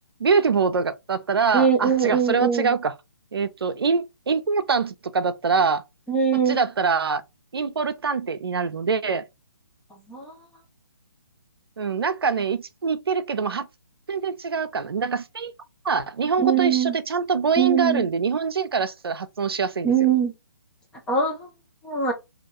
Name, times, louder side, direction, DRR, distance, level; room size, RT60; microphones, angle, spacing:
voice 1, 0.2-2.9 3.3-5.8 6.5-7.2 7.5-9.2 11.8-13.7 14.1-15.5 15.8-19.9, right 5 dB, 90° right, 0.4 m, -24 dB
voice 2, 1.5-2.7 6.1-6.6 10.1-10.3 16.4-16.9 17.6-18.1 19.8-20.3 21.1-21.5 21.8-22.1, right 7 dB, 5° left, 0.5 m, -22 dB
2.4 x 2.2 x 2.9 m
hypercardioid pair, 150°, 12 cm